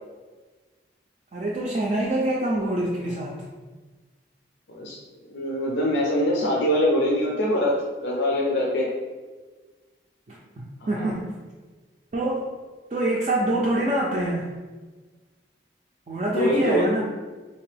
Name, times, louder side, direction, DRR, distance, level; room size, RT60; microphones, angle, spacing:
voice 1, 1.3-3.4 10.3-10.4 10.9-11.2 12.1-12.5 12.9-14.5 16.1-17.0, right 1 dB, 40° right, -4 dB, 0.4 m, -25 dB
voice 2, 5.3-8.9 11.0-11.1 16.4-16.9, left 1 dB, 90° left, -3 dB, 0.6 m, -23 dB
3.6 x 2.8 x 3.2 m, 1.3 s
head